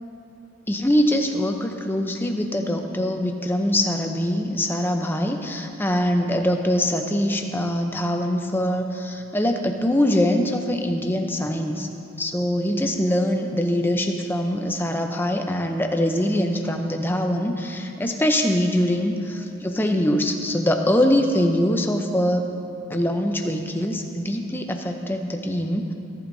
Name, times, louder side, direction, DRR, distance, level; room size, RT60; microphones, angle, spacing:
voice 1, 0.7-11.9 12.2-22.5 22.9-25.9, left 1 dB, 10° left, 4 dB, 0.6 m, -23 dB
17.5 x 11.0 x 2.7 m, 2.8 s
head